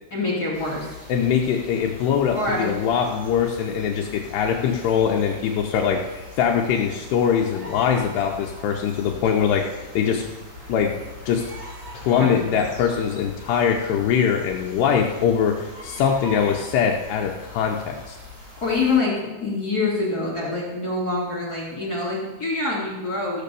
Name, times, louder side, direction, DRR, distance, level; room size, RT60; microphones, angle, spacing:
voice 1, 0.1-0.9 2.3-2.7 12.2-12.4 18.6-23.4, left 3 dB, 35° left, -6 dB, 1.6 m, -25 dB
sound 1, 0.5-19.0, left 1 dB, 15° right, 1.9 m, -41 dB
voice 2, 1.1-6.0 6.4-10.3 10.7-10.9 11.3-11.5 11.9-18.2, left 7 dB, 90° left, 1 dB, 2.3 m, -22 dB
15.5 x 6.6 x 6.9 m, 1.2 s
omnidirectional pair, 5.9 m